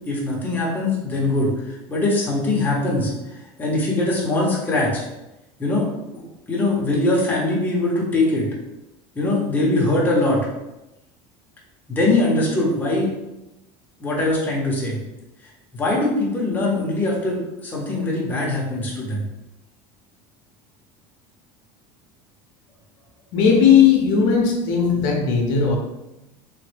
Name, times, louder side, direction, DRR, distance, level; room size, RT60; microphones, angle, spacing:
voice 1, 0.1-1.5 1.9-3.1 3.6-5.0 5.6-5.9 6.1-8.5 9.1-10.4 11.9-13.1 14.0-15.0 15.7-19.2, left 2 dB, 15° left, -4 dB, 0.7 m, -22 dB
voice 2, 23.3-25.8, left 7 dB, 70° left, 0 dB, 0.6 m, -17 dB
3.1 x 2.1 x 3.2 m, 0.95 s
cardioid pair, 145°, 12 cm